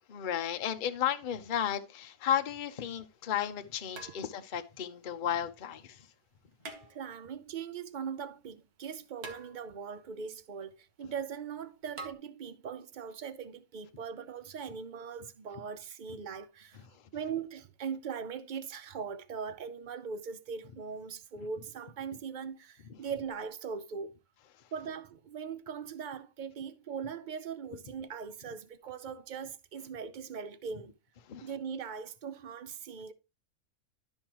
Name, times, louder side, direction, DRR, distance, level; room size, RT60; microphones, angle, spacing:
voice 1, 0.1-6.0 31.3-31.5, left 10 dB, 45° left, 0.7 m, -33 dB
sound 1, 2.6-2.7 3.9-4.7 6.6-7.4 9.2-10.0 12.0-12.1, right 3 dB, 90° right, 1.8 m, -46 dB
voice 2, 6.9-16.8 17.1-24.1 24.7-31.0 31.4-33.1, right 6 dB, 55° right, 0.5 m, -40 dB
12.0 x 5.5 x 3.0 m
omnidirectional pair, 1.5 m